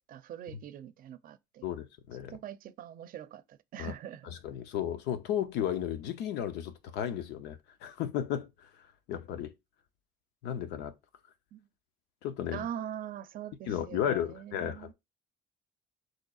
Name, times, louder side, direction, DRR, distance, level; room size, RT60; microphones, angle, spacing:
voice 1, 0.1-1.6 2.3-4.3 11.5-11.7 12.5-14.9, right 10 dB, 55° right, 0.5 m, -43 dB
voice 2, 1.6-2.4 3.8-3.9 4.3-8.8 9.1-9.5 10.4-10.9 12.2-12.7 13.7-14.9, left 10 dB, 85° left, 0.7 m, -34 dB
6.3 x 3.2 x 2.4 m
cardioid pair, 110°, 17 cm